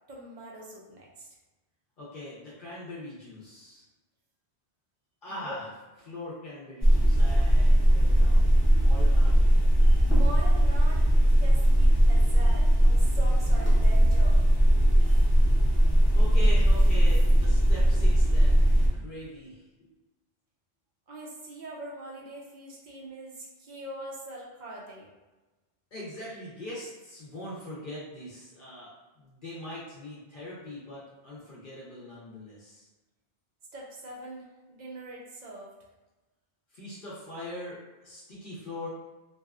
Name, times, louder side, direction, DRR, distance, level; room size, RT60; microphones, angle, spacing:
voice 1, 0.1-1.3 5.4-5.6 10.1-11.0 11.4-14.4 21.1-25.1 33.7-35.7, right 1 dB, 55° right, -3 dB, 0.5 m, -42 dB
voice 2, 2.0-3.8 5.2-5.7 6.0-8.5 8.8-9.7 16.1-19.6 25.9-32.9 36.7-38.9, left 1 dB, 55° left, -7 dB, 0.7 m, -41 dB
sound 1, 6.8-18.9, equal, 20° left, 0.4 m, -20 dB
2.6 x 2.3 x 2.3 m, 1.1 s
omnidirectional pair, 1.1 m